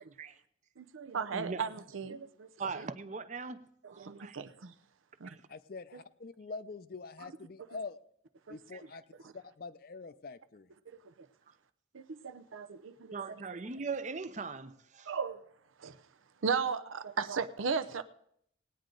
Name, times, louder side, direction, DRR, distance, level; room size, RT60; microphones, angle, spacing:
voice 1, 0.8-2.5 2.8-2.9 3.8-4.7 5.2-5.3 8.5-8.6 11.9-13.2 15.1-15.4 15.8-15.9 16.4-18.0, right 5 dB, 90° right, 11 dB, 0.7 m, -36 dB
voice 2, 1.3-1.6 2.6-4.4 5.2-5.4 13.1-15.1, right 4 dB, 35° right, 12 dB, 0.6 m, -40 dB
voice 3, 5.5-8.0 8.5-9.0 9.3-10.7, left 4 dB, 50° left, 13 dB, 0.5 m, -45 dB
18.5 x 9.2 x 3.8 m, 0.70 s
head